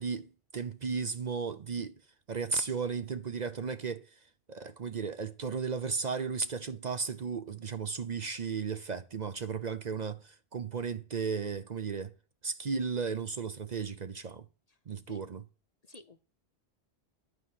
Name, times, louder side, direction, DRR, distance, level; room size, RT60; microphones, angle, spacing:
voice 1, 0.0-2.0 2.3-4.1 4.5-12.1 12.4-14.4 14.9-15.4, right 5 dB, 45° right, 0.7 m, -35 dB
voice 2, 15.8-16.2, left 4 dB, 45° left, 0.7 m, -53 dB
11.0 x 4.7 x 7.5 m
omnidirectional pair, 1.1 m